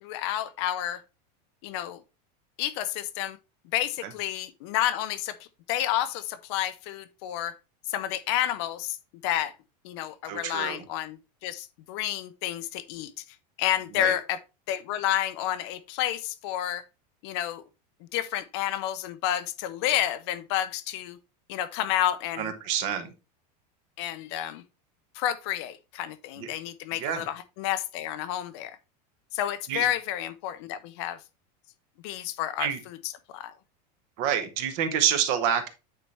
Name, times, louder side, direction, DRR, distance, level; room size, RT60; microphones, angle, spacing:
voice 1, 0.0-1.0 1.6-2.0 2.6-3.4 3.7-7.6 7.9-9.0 9.2-9.5 9.8-13.2 13.6-14.4 14.7-16.8 17.2-17.6 18.1-21.2 21.5-22.5 24.0-24.6 25.1-28.8 29.3-31.2 32.0-33.5, left 12 dB, 40° left, 0.5 m, -30 dB
voice 2, 10.3-10.8 14.0-14.1 22.4-23.1 26.4-26.5 27.0-27.2 29.7-29.9 32.6-32.8 34.2-35.7, right 9 dB, 40° right, 0.9 m, -27 dB
9.1 x 4.2 x 3.2 m
supercardioid pair, 180°, 21 cm